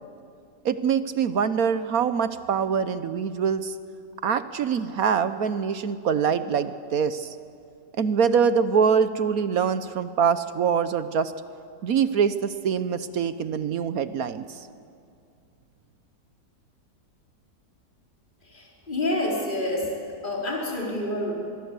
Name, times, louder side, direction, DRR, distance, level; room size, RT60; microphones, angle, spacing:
voice 1, 0.6-3.7 4.2-7.3 8.0-11.3 11.8-14.5, right 6 dB, 60° right, 12 dB, 1.2 m, -24 dB
voice 2, 18.4-20.0 20.2-21.3, left 1 dB, 25° left, -2 dB, 4.3 m, -28 dB
25.0 x 22.0 x 8.2 m, 2.4 s
omnidirectional pair, 1.9 m